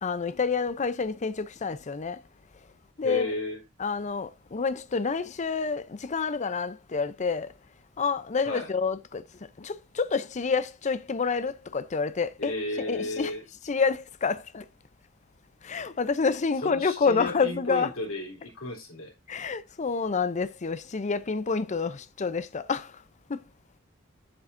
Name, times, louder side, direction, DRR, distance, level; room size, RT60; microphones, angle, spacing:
voice 1, 0.0-2.2 3.0-3.3 3.8-7.5 8.0-9.2 9.6-12.5 12.9-13.3 13.7-14.7 15.6-17.9 19.3-23.0 23.3-23.4, left 5 dB, 35° left, 0.5 m, -28 dB
voice 2, 3.0-3.6 8.4-8.7 12.4-13.4 16.6-19.1, left 2 dB, 85° left, 3.2 m, -33 dB
8.4 x 7.8 x 2.6 m
head